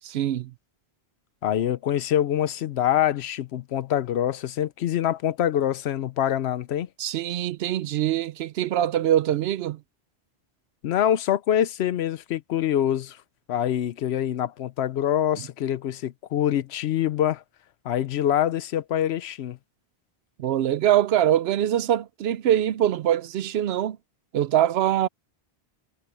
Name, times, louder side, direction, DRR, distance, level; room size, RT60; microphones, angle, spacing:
voice 1, 0.1-0.5 7.0-9.8 20.4-24.0 24.3-25.1, right 11 dB, 75° right, 0.8 m, -23 dB
voice 2, 1.4-6.9 10.8-13.2 13.5-17.4 17.8-19.6, left 11 dB, 85° left, 0.9 m, -25 dB
omnidirectional pair, 1.1 m